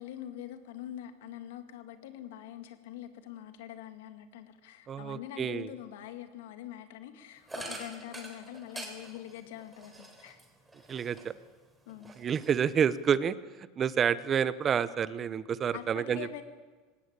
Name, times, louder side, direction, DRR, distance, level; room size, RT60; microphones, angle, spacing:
voice 1, 0.0-10.4 11.9-12.2 15.7-16.4, left 11 dB, 80° left, 8 dB, 2.3 m, -44 dB
voice 2, 4.9-5.7 10.9-11.3 12.2-13.4 13.8-16.4, right 7 dB, 30° right, 16 dB, 0.8 m, -29 dB
sound 1, 7.5-11.5 11.9-13.0, right 2 dB, 10° right, 3.8 m, -45 dB
19.0 x 17.5 x 8.3 m, 1.3 s
supercardioid pair, 130°, 0 cm